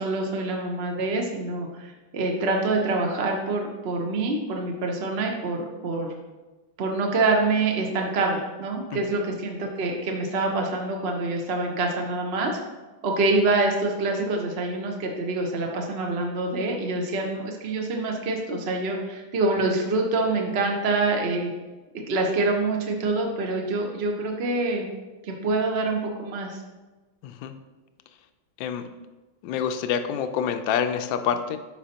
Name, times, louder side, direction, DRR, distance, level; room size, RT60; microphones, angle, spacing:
voice 1, 0.0-6.1 6.8-12.5 13.0-21.5 22.1-24.9 25.2-26.6, right 2 dB, 50° right, 1 dB, 0.7 m, -26 dB
voice 2, 27.2-27.5 28.6-28.9 29.4-31.6, left 8 dB, 75° left, 9 dB, 1.3 m, -27 dB
11.5 x 4.8 x 2.9 m, 1.2 s
omnidirectional pair, 2.2 m